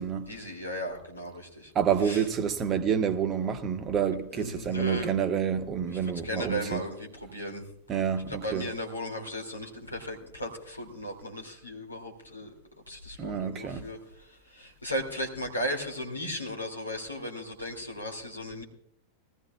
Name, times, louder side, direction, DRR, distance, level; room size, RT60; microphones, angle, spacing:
voice 1, 0.3-1.7 2.0-2.2 4.3-5.1 5.9-7.6 8.3-12.5 12.9-18.6, equal, 80° left, 2.5 m, -36 dB
voice 2, 1.7-6.8 7.9-8.7 13.2-13.9, right 8 dB, 30° right, 1.0 m, -28 dB
20.5 x 14.5 x 2.3 m
figure-of-eight pair, 90°, 0 cm